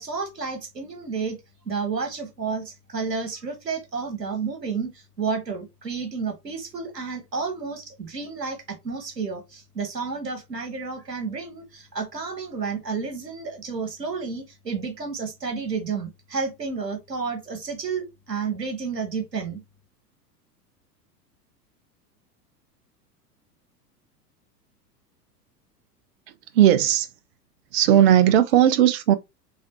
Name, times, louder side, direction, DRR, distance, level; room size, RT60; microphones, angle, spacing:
voice 1, 0.0-1.4 1.6-19.6, right 5 dB, 85° right, 1.3 m, -31 dB
voice 2, 26.5-27.1 27.7-29.1, right 11 dB, 45° right, 0.4 m, -17 dB
3.5 x 3.2 x 2.9 m
figure-of-eight pair, 90°, 49 cm